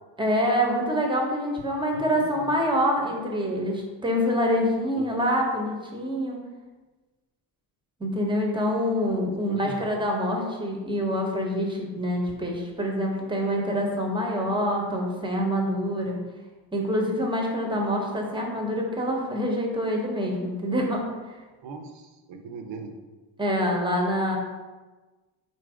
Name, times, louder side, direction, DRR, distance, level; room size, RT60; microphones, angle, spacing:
voice 1, 0.2-6.4 8.0-16.2 16.7-21.0 23.4-24.4, equal, 10° right, 0 dB, 0.8 m, -26 dB
voice 2, 1.9-2.5 4.9-5.1 9.4-9.8 21.6-22.9, right 4 dB, 85° right, 4 dB, 0.7 m, -40 dB
4.1 x 2.6 x 4.8 m, 1.2 s
cardioid pair, 120°, 43 cm